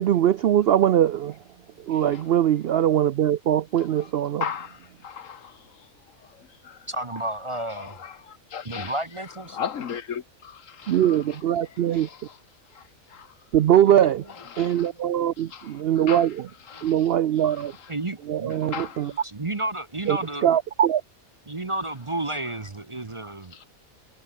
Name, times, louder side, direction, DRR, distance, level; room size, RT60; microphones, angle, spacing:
voice 1, 0.0-1.4 1.9-4.4 10.9-12.1 13.5-14.2 14.6-16.5 16.8-17.7 18.3-19.1 20.1-21.0, right 11 dB, 65° right, 0.6 m, -21 dB
voice 2, 1.9-2.2 3.8-4.1 4.4-5.9 6.2-6.9 7.6-9.0 9.5-12.4 12.7-13.3 14.3-14.9 15.5-16.3 16.7-17.1 17.5-17.9 18.6-19.2 23.5-23.7, left 7 dB, 65° left, 1.5 m, -38 dB
voice 3, 6.9-8.0 8.6-9.6 14.9-15.0 16.7-17.0 17.9-20.5 21.5-23.6, right 2 dB, 25° right, 0.9 m, -32 dB
omnidirectional pair, 1.5 m